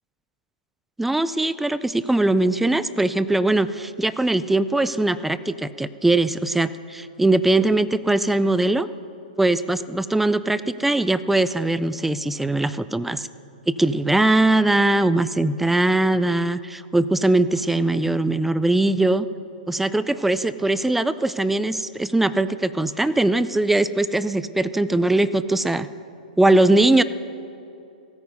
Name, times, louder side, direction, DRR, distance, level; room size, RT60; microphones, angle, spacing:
voice 1, 1.0-8.9 9.4-13.3 13.7-19.3 19.7-25.9 26.4-27.0, right 2 dB, 5° right, 14 dB, 0.3 m, -21 dB
15.5 x 9.4 x 5.3 m, 2.7 s
hypercardioid pair, 125°, 5 cm